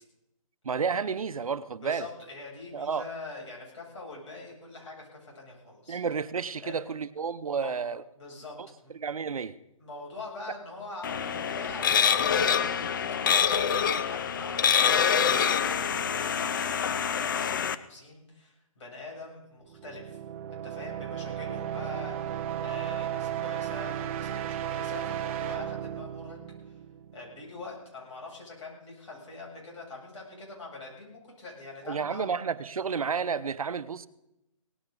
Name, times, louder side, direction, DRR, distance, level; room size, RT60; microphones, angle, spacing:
voice 1, 0.6-2.1 2.7-3.0 5.9-8.0 8.6-8.7 9.0-9.5 31.9-34.1, right 6 dB, 80° right, 13 dB, 0.9 m, -31 dB
voice 2, 1.8-6.0 6.6-6.8 7.5-7.7 8.2-8.9 9.8-20.2 20.5-26.4 26.6-26.8 27.1-32.4, left 3 dB, 55° left, -2 dB, 7.6 m, -44 dB
sound 1, 11.0-17.8, left 7 dB, 35° left, 0.6 m, -26 dB
sound 2, 19.7-27.4, right 10 dB, 20° right, 0.9 m, -35 dB
18.0 x 15.0 x 4.0 m, 0.86 s
hypercardioid pair, 160°, 18 cm